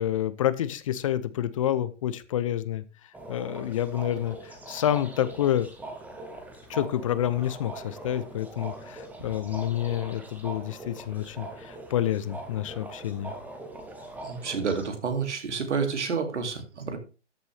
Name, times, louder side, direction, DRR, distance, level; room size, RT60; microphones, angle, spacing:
voice 1, 0.0-2.8 3.3-5.7 6.7-13.3, left 11 dB, 30° left, 15 dB, 0.5 m, -28 dB
sound 1, 3.1-14.9, right 2 dB, 5° right, 1.0 m, -42 dB
voice 2, 14.2-17.0, right 5 dB, 70° right, 6 dB, 2.5 m, -29 dB
13.5 x 6.8 x 3.3 m, 0.34 s
hypercardioid pair, 140°, 36 cm